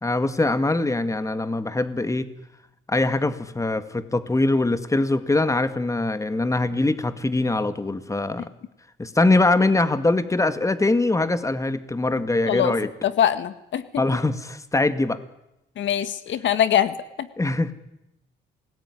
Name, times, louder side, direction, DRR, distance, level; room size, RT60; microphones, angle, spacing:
voice 1, 0.0-2.3 2.9-8.5 9.0-12.9 14.0-15.2 17.4-17.7, left 2 dB, 15° left, 11 dB, 2.1 m, -22 dB
voice 2, 13.0-13.8 15.8-17.3, left 10 dB, 70° left, 13 dB, 1.7 m, -23 dB
27.5 x 19.5 x 10.0 m, 0.89 s
cardioid pair, 90°, 20 cm